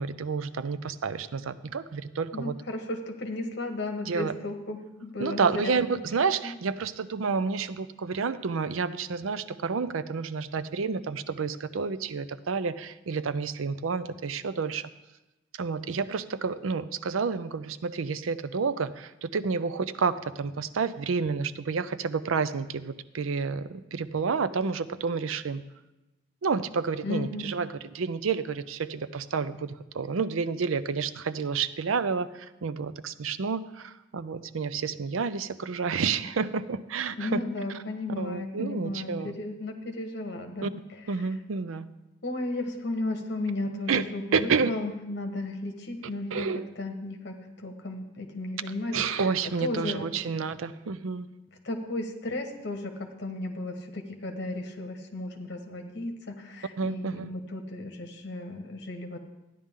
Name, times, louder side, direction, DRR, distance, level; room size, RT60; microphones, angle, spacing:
voice 1, 0.0-2.6 4.1-4.3 5.2-14.9 15.6-25.6 26.4-37.4 38.2-39.4 40.6-40.7 41.1-41.9 43.9-44.0 44.3-44.7 46.3-46.6 48.9-51.3 56.8-57.3, right 5 dB, 90° right, 14 dB, 0.5 m, -30 dB
voice 2, 2.3-5.8 6.4-6.5 27.0-27.5 37.2-40.7 42.2-46.5 46.8-49.2 49.6-50.3 51.6-59.2, left 2 dB, 60° left, 4 dB, 1.3 m, -34 dB
13.0 x 10.0 x 3.7 m, 1.0 s
head